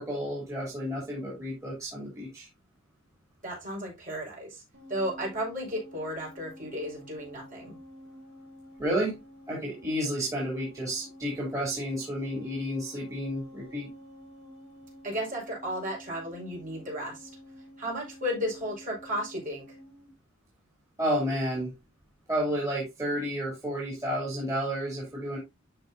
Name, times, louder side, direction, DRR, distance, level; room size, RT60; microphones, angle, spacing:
voice 1, 0.0-2.5 8.8-9.2 9.5-13.9 21.0-21.7 22.3-25.4, equal, 15° right, 3.1 m, -31 dB
voice 2, 3.4-4.6 4.9-7.8 15.0-17.3 17.8-19.8, equal, 40° right, 5.1 m, -34 dB
sound 1, 4.7-20.1, left 1 dB, 85° right, 3.2 m, -50 dB
12.0 x 4.6 x 2.7 m
head